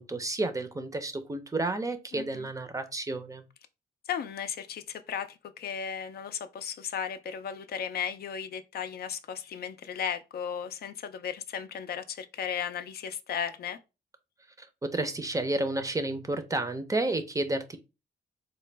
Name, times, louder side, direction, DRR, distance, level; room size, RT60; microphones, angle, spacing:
voice 1, 0.0-3.4 14.6-17.8, right 2 dB, 20° right, 0.5 m, -31 dB
voice 2, 2.1-2.5 4.1-13.8, left 8 dB, 60° left, 0.4 m, -35 dB
4.0 x 2.1 x 3.2 m
cardioid pair, 110°, 18 cm